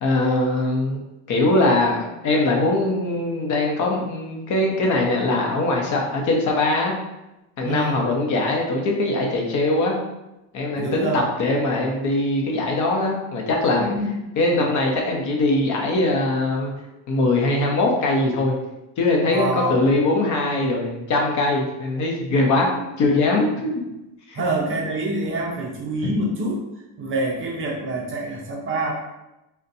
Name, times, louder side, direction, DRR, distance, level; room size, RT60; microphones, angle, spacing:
voice 1, 0.0-1.0 1.3-6.9 7.6-10.0 10.5-13.9 14.4-16.7 17.1-18.6 19.0-22.7 23.0-23.7 24.3-24.4, left 2 dB, 45° left, 0 dB, 0.7 m, -21 dB
voice 2, 7.6-8.0 10.8-11.2 13.8-14.1 14.5-14.7 19.3-19.9 22.5-22.8 24.4-26.6 27.0-28.9, right 2 dB, 30° right, -2 dB, 0.4 m, -26 dB
4.0 x 2.2 x 2.6 m, 0.94 s
cardioid pair, 145°, 41 cm